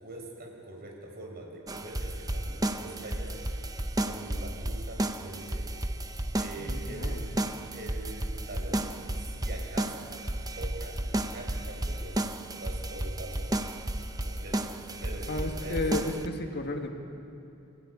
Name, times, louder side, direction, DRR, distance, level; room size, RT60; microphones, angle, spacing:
voice 1, 0.0-3.3 4.0-5.6 6.3-7.5 7.7-8.9 9.1-10.1 10.5-13.5 14.2-14.7 15.0-15.8, right 2 dB, 50° right, 0 dB, 5.9 m, -43 dB
sound 1, 1.7-16.3, right 1 dB, 15° right, 0.9 m, -33 dB
voice 2, 6.6-7.2 15.3-16.9, left 2 dB, 50° left, 3 dB, 2.0 m, -33 dB
24.5 x 16.5 x 9.7 m, 2.9 s
head